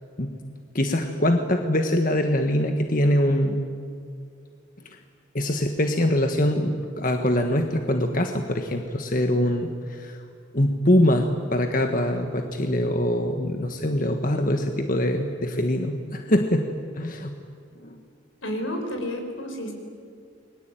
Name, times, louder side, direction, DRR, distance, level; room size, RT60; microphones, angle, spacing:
voice 1, 0.7-3.6 5.3-10.2 10.5-16.7 17.0-17.3 17.8-17.9, left 1 dB, 45° left, 5 dB, 1.5 m, -23 dB
voice 2, 18.4-19.7, equal, 85° left, 3 dB, 5.8 m, -30 dB
29.5 x 22.0 x 9.2 m, 2.3 s
head